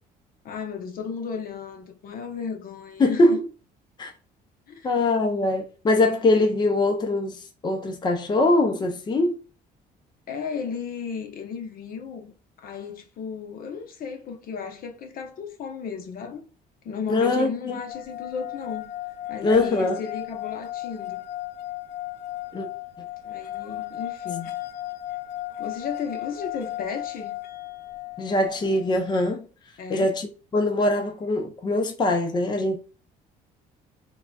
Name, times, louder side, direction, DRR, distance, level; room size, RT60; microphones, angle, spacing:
voice 1, 0.4-3.4 4.7-4.9 10.3-12.3 12.6-16.4 16.8-18.9 19.3-21.2 23.2-24.5 25.6-27.3 29.8-30.1, left 6 dB, 60° left, 0.8 m, -34 dB
voice 2, 3.0-3.4 4.0-4.1 4.8-9.4 17.1-17.8 19.4-20.0 22.5-22.7 28.2-29.5 29.9-32.8, left 2 dB, 25° left, 0.6 m, -22 dB
sound 1, 17.9-29.1, left 15 dB, 85° left, 0.4 m, -35 dB
3.8 x 2.2 x 2.3 m
cardioid pair, 110°, 17 cm